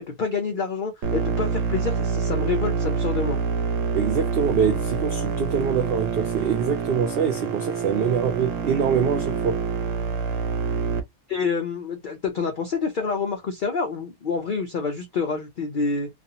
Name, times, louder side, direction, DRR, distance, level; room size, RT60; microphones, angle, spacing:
voice 1, 0.0-3.4 11.3-16.1, left 4 dB, 80° left, 0.4 m, -27 dB
sound 1, 1.0-11.0, right 5 dB, 70° right, 0.9 m, -26 dB
voice 2, 3.9-9.6, right 7 dB, 85° right, 0.5 m, -24 dB
2.5 x 2.4 x 2.7 m
omnidirectional pair, 1.6 m